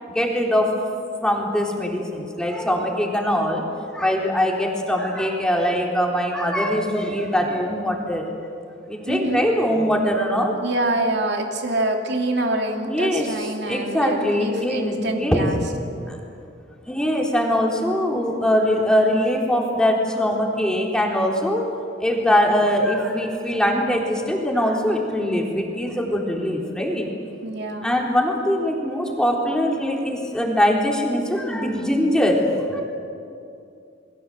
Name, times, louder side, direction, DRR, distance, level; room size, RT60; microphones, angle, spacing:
voice 1, 0.1-0.8 1.2-3.6 3.9-8.3 8.9-10.5 12.8-13.3 13.7-15.5 16.1-16.2 16.9-21.6 22.0-27.1 27.8-32.8, equal, 5° left, -1 dB, 3.9 m, -22 dB
voice 2, 9.1-9.4 10.6-15.6 27.4-27.9, right 1 dB, 65° right, 3 dB, 2.7 m, -25 dB
29.0 x 22.0 x 7.9 m, 2.5 s
head